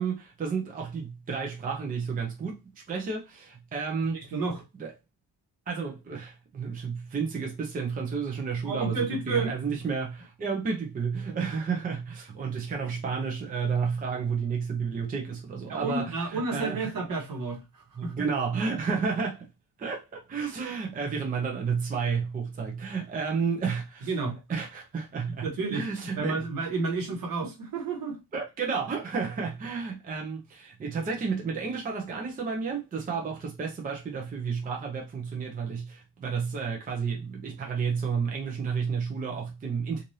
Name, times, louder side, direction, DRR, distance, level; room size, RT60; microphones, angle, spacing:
voice 1, 0.0-2.6 2.9-4.3 4.7-4.9 5.7-16.9 18.0-19.5 19.8-24.1 24.5-26.7 28.3-40.0, right 5 dB, 20° right, 0.6 m, -31 dB
voice 2, 4.1-4.6 8.6-9.5 15.7-18.1 24.0-24.4 25.4-25.9 26.1-28.2, right 3 dB, 55° right, 1.2 m, -31 dB
3.1 x 2.6 x 2.6 m
cardioid pair, 165°, 40 cm